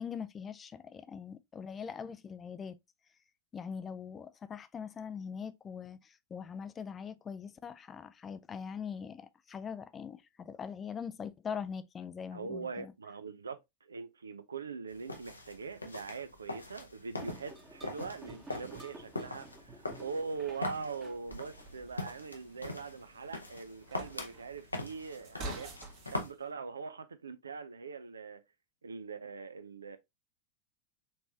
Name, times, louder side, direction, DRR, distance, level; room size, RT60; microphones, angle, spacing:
voice 1, 0.0-2.8 3.5-12.9, left 6 dB, 20° left, 0.3 m, -42 dB
voice 2, 12.3-25.7 26.1-28.4 28.8-30.0, right 5 dB, 75° right, 0.5 m, -42 dB
sound 1, 14.9-26.3, left 2 dB, 85° left, 0.7 m, -43 dB
sound 2, 17.2-22.1, right 2 dB, 15° right, 1.0 m, -52 dB
sound 3, 21.3-26.3, right 2 dB, 40° right, 1.3 m, -48 dB
4.3 x 3.1 x 2.6 m
figure-of-eight pair, 90°, 0 cm